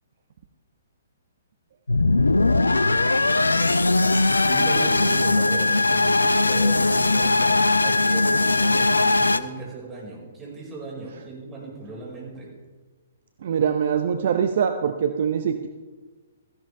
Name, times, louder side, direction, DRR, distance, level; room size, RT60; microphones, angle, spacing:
sound 1, 1.9-9.4, left 2 dB, 80° left, 0.6 m, -20 dB
voice 1, 4.5-12.5, right 3 dB, 15° right, -4 dB, 5.0 m, -37 dB
voice 2, 13.4-15.7, right 7 dB, 50° right, 8 dB, 0.7 m, -23 dB
16.5 x 14.5 x 3.4 m, 1.3 s
figure-of-eight pair, 120°, 0 cm